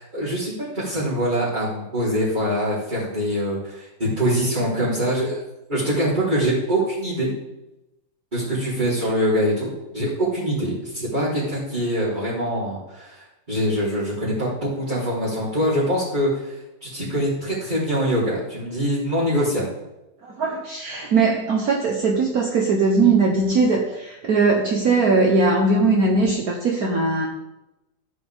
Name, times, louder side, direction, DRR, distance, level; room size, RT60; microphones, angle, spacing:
voice 1, 0.0-5.4 5.7-7.3 8.3-16.6 16.8-19.7, equal, 25° right, -11 dB, 4.0 m, -24 dB
voice 2, 20.2-27.3, right 3 dB, 55° right, 0 dB, 1.5 m, -20 dB
15.0 x 8.1 x 3.6 m, 0.97 s
omnidirectional pair, 2.0 m